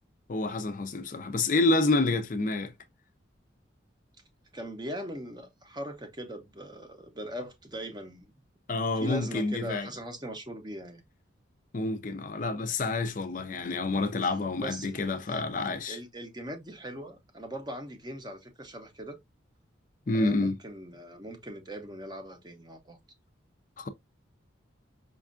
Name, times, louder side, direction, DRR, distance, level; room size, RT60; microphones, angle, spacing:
voice 1, 0.3-2.7 8.7-9.9 11.7-16.0 20.1-20.6 23.8-23.9, left 2 dB, 40° left, 0.4 m, -28 dB
voice 2, 4.5-8.4 9.0-11.0 14.6-14.9 15.3-15.4 15.9-19.2 20.1-23.0, equal, 20° right, 0.6 m, -40 dB
5.1 x 2.4 x 2.3 m
head